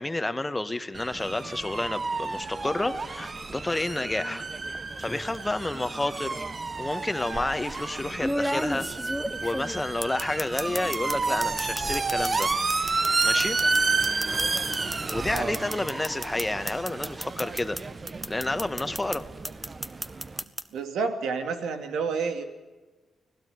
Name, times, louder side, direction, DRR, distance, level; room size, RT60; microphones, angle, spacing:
voice 1, 0.0-4.5 5.0-6.5 6.8-8.9 9.4-12.5 13.2-13.6 15.1-17.8 18.3-19.3, left 2 dB, 15° left, 10 dB, 1.8 m, -30 dB
sound 1, 0.9-20.4, right 3 dB, 35° right, 1.3 m, -31 dB
sound 2, 5.0-5.4 6.6-6.7 8.2-11.2 11.4-17.8 18.1-19.2 19.4-20.6, equal, ahead, 1.4 m, -32 dB
voice 2, 20.7-22.4, right 5 dB, 85° right, 7 dB, 2.9 m, -29 dB
25.0 x 17.0 x 9.7 m, 1.2 s
cardioid pair, 75°, 0 cm